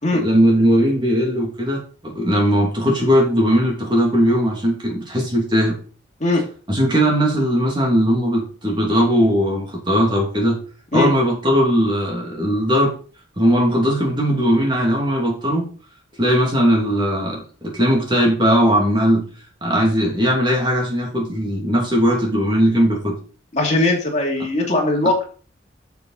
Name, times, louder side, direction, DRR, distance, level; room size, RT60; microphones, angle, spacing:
voice 1, 0.1-5.8 6.7-10.6 10.9-12.9 13.4-15.7 16.2-19.2 19.6-23.2, equal, 25° right, -1 dB, 2.8 m, -18 dB
voice 2, 23.5-25.2, left 2 dB, 35° left, 0 dB, 2.5 m, -19 dB
7.8 x 7.2 x 4.1 m, 0.40 s
head